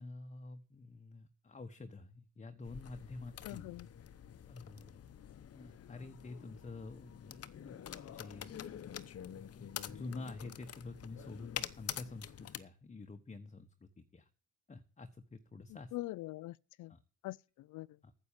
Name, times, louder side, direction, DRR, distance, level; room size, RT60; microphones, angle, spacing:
voice 1, 0.0-3.7 4.5-5.1 5.5-7.8 8.1-8.5 9.2-14.3 14.7-15.9 16.9-17.0 18.0-18.1, left 3 dB, 25° left, 1.1 m, -48 dB
sound 1, 2.6-12.6, left 9 dB, 50° left, 0.9 m, -47 dB
voice 2, 3.4-3.9 15.7-16.9 17.2-18.0, left 18 dB, 80° left, 0.5 m, -44 dB
9.6 x 7.9 x 7.2 m
cardioid pair, 90°, 30 cm